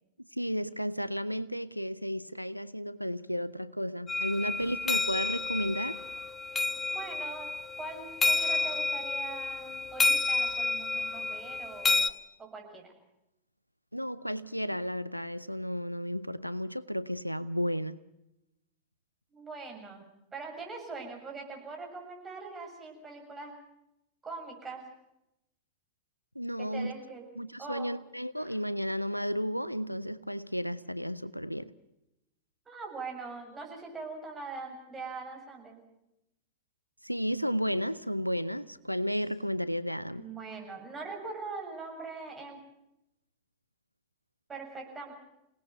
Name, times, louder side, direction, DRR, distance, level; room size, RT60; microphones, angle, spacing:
voice 1, 0.3-6.0 13.9-18.0 26.3-26.9 27.4-31.7 37.0-40.2, equal, 90° left, 0.7 m, -33 dB
sound 1, 4.1-12.1, left 3 dB, 15° left, 1.0 m, -30 dB
voice 2, 6.9-7.5 7.8-12.9 19.3-23.5 24.2-24.8 26.6-27.2 27.6-27.9 28.4-28.6 32.7-35.8 40.2-42.6 44.5-45.1, right 4 dB, 15° right, 7.4 m, -42 dB
28.5 x 19.0 x 5.5 m
figure-of-eight pair, 90°, 0 cm